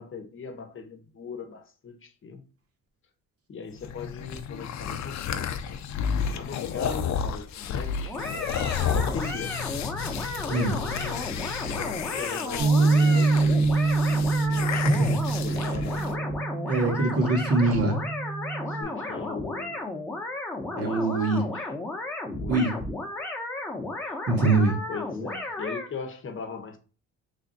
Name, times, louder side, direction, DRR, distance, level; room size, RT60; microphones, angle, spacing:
voice 1, 0.0-2.4 3.5-5.5 6.3-8.4 8.9-9.6 10.4-16.3 17.5-17.9 18.7-19.9 20.7-21.7 22.4-22.8 24.0-24.1 24.9-26.8, left 4 dB, 45° left, 0.9 m, -39 dB
sound 1, 3.7-16.1, left 7 dB, 65° left, 0.5 m, -32 dB
sound 2, 8.1-25.9, left 2 dB, 5° left, 0.9 m, -34 dB
Bass guitar, 12.6-18.8, right 3 dB, 75° right, 1.6 m, -25 dB
voice 2, 14.7-15.1 16.7-18.0 20.8-21.4 22.5-22.7 24.3-24.8, right 2 dB, 50° right, 1.2 m, -23 dB
3.4 x 2.3 x 4.0 m
cardioid pair, 90°, 30 cm